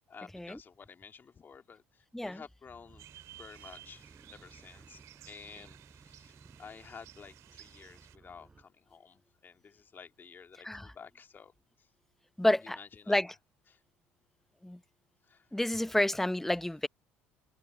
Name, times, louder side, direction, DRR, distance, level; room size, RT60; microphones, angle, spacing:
voice 1, 0.1-3.1 3.4-11.5 11.8-11.9 12.6-13.2 13.7-13.8 15.2-15.6, left 6 dB, 35° left, 2.4 m, -52 dB
sound 1, 2.6-8.6, right 4 dB, 25° right, 6.5 m, -58 dB
sound 2, 3.0-8.2, right 14 dB, 65° right, 2.1 m, -55 dB
voice 2, 12.4-12.8 13.1-13.3 14.6-14.8 15.5-16.9, left 1 dB, 5° left, 0.7 m, -29 dB
hypercardioid pair, 65°, 6 cm